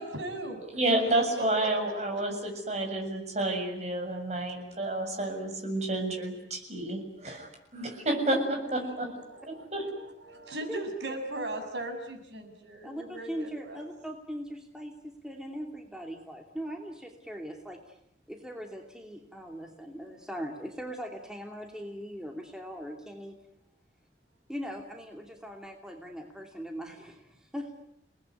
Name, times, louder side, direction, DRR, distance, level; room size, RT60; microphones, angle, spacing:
voice 1, 0.0-0.6 1.1-2.2 8.5-13.9, right 1 dB, 70° right, 5 dB, 6.7 m, -39 dB
voice 2, 0.7-7.5 7.7-9.1 9.7-9.8, right 1 dB, 40° right, 3 dB, 7.3 m, -30 dB
voice 3, 12.8-18.0 18.3-23.4 24.5-27.7, equal, 5° right, 2 dB, 2.7 m, -40 dB
30.0 x 19.5 x 9.6 m, 0.77 s
head